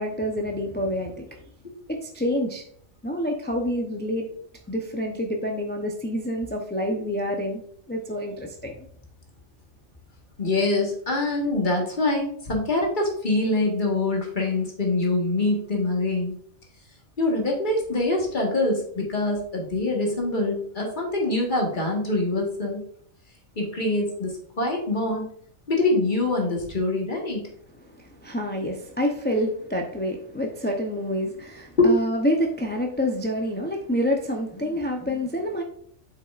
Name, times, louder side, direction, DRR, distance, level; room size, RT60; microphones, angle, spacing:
voice 1, 0.0-1.4 2.0-2.6 3.0-4.3 4.7-7.6 7.9-8.7 27.9-35.6, equal, 15° left, 1 dB, 0.4 m, -27 dB
voice 2, 10.4-16.3 17.2-22.8 23.6-25.3 25.7-27.4 31.8-31.9, left 2 dB, 40° left, -1 dB, 1.7 m, -24 dB
8.0 x 5.6 x 2.5 m, 0.62 s
omnidirectional pair, 1.4 m